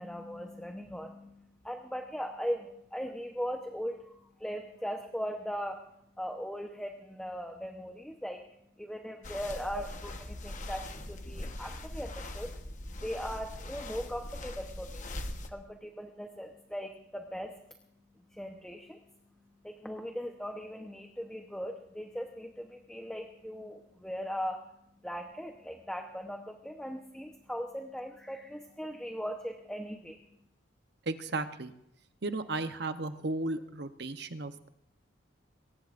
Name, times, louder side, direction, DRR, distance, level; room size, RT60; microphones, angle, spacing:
voice 1, 0.0-15.2 15.5-17.7 18.1-30.2, equal, 5° left, 2 dB, 0.9 m, -39 dB
sound 1, 9.2-15.5, left 1 dB, 40° left, 1.2 m, -41 dB
voice 2, 31.1-31.7 32.2-34.7, right 2 dB, 55° right, 9 dB, 0.9 m, -35 dB
21.5 x 19.0 x 2.6 m, 0.79 s
head